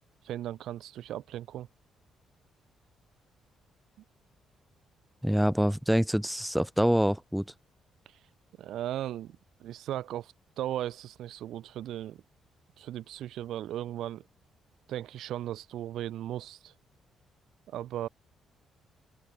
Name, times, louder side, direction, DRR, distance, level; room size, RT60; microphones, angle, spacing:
voice 1, 0.2-1.7 8.6-12.2 12.8-14.2 14.9-16.7 17.7-18.1, right 12 dB, 80° right, 2.1 m, -37 dB
voice 2, 5.2-7.4, equal, 5° right, 1.0 m, -25 dB
open air
cardioid pair, 90°, 0 cm